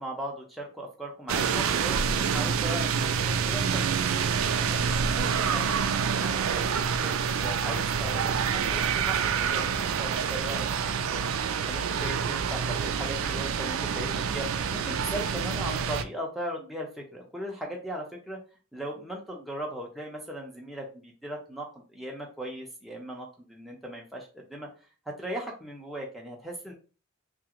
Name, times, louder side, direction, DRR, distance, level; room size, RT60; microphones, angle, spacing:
voice 1, 0.0-3.7 4.0-10.7 11.1-11.3 11.7-18.4 18.7-24.7 25.1-26.7, right 1 dB, ahead, -2 dB, 0.6 m, -38 dB
sound 1, 1.3-16.0, right 6 dB, 70° right, 0.3 m, -27 dB
2.9 x 2.4 x 2.9 m, 0.35 s
head